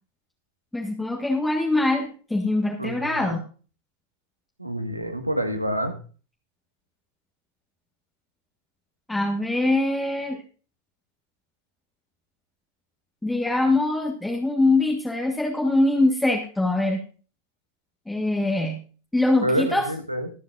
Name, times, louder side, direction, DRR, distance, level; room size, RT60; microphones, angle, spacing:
voice 1, 0.7-3.4 9.1-10.4 13.2-17.0 18.1-18.8 19.1-19.9, left 2 dB, 5° left, 1 dB, 1.5 m, -23 dB
voice 2, 2.8-3.3 4.6-6.0 19.4-20.3, right 1 dB, 85° right, 7 dB, 1.6 m, -27 dB
22.0 x 8.1 x 2.5 m, 0.38 s
figure-of-eight pair, 90°, 0 cm